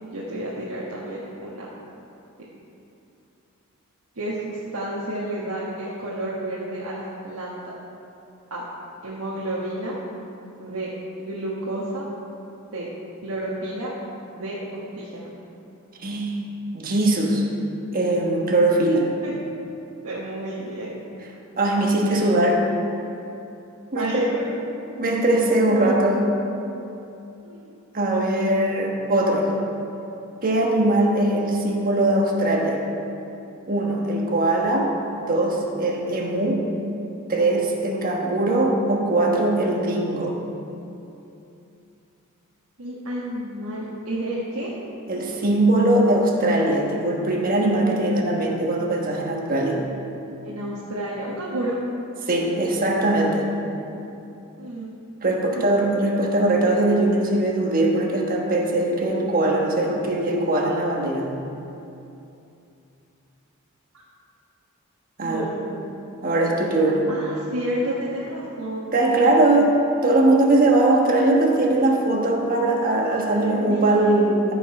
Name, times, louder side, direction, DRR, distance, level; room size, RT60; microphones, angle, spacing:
voice 1, 0.1-1.7 4.1-7.6 8.5-8.6 9.0-10.0 10.6-10.9 11.2-12.1 12.7-12.9 13.2-13.9 14.3-15.3 19.2-19.4 20.0-21.0 21.9-22.5 23.9-24.5 24.9-25.0 25.6-26.1 27.4-27.7 42.8-44.7 50.4-51.8 54.6-54.9 55.5-55.8 63.9-64.0 65.2-66.0 67.1-69.8 73.3-74.3, right 1 dB, 80° right, -7 dB, 1.4 m, -31 dB
voice 2, 16.0-16.4 16.7-17.4 17.9-19.1 21.6-22.6 23.9-24.3 25.0-26.2 27.9-29.5 30.4-32.8 33.7-34.9 35.2-36.7 37.3-40.4 45.1-49.8 52.3-53.5 55.2-61.4 65.2-65.4 66.2-67.1 68.9-69.7 70.0-74.5, right 2 dB, 40° right, 0 dB, 1.3 m, -21 dB
14.5 x 5.5 x 4.8 m, 2.8 s
head